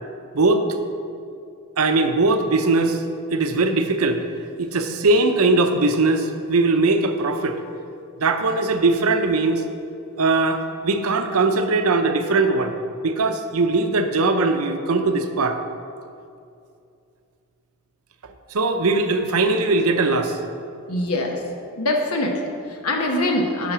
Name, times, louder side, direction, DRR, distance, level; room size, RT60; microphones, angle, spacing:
voice 1, 1.8-3.0 3.3-4.2 4.6-7.6 8.2-9.6 10.2-12.7 13.0-15.6 18.5-20.4, right 3 dB, 75° right, 7 dB, 0.7 m, -20 dB
voice 2, 20.9-21.4 21.8-23.7, left 1 dB, 85° left, 2 dB, 1.0 m, -23 dB
8.6 x 5.8 x 6.0 m, 2.5 s
head